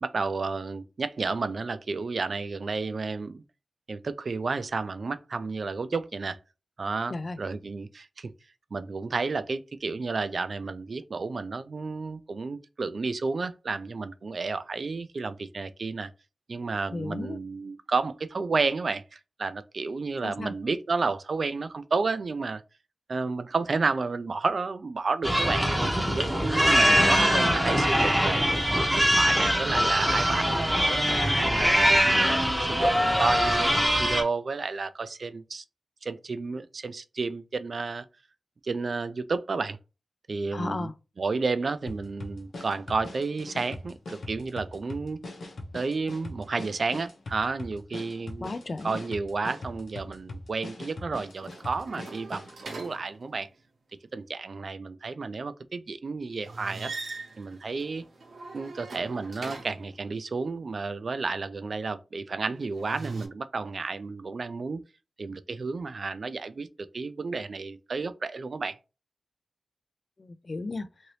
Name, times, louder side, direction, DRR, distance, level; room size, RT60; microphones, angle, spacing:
voice 1, 0.0-3.4 3.9-6.4 6.8-8.3 8.7-16.1 16.5-22.6 23.1-25.6 26.1-28.5 28.9-31.1 31.5-35.6 36.0-38.0 38.6-39.8 40.3-40.9 41.2-45.2 45.7-48.5 48.8-53.5 54.1-56.9 57.4-58.0 58.5-64.8 65.2-66.7 66.9-68.8, right 4 dB, 55° right, 0.3 m, -31 dB
voice 2, 16.9-17.4 20.2-20.5 26.9-27.4 40.5-40.9 48.4-49.0 70.2-70.9, left 2 dB, 45° left, 0.3 m, -34 dB
sound 1, 25.2-34.2, equal, 5° right, 0.7 m, -23 dB
sound 2, 41.9-52.6, left 2 dB, 80° left, 0.8 m, -41 dB
sound 3, 51.2-53.6 56.4-60.0 62.6-63.3, right 3 dB, 90° right, 0.9 m, -42 dB
2.8 x 2.6 x 3.1 m
wide cardioid pair, 100°, 0 cm